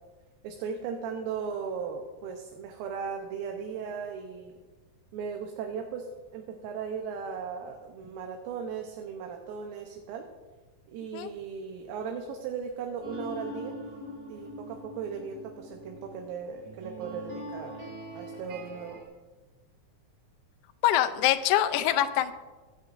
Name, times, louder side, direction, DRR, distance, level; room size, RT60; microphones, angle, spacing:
voice 1, 0.4-4.5 5.1-10.3 10.9-13.8 14.3-17.8 18.1-19.0, right 6 dB, 85° right, 3 dB, 2.7 m, -37 dB
sound 1, 13.0-19.0, right 1 dB, 60° right, 3.9 m, -42 dB
voice 2, 20.8-22.3, left 12 dB, 80° left, 9 dB, 1.8 m, -24 dB
24.0 x 8.2 x 2.6 m, 1.3 s
omnidirectional pair, 4.1 m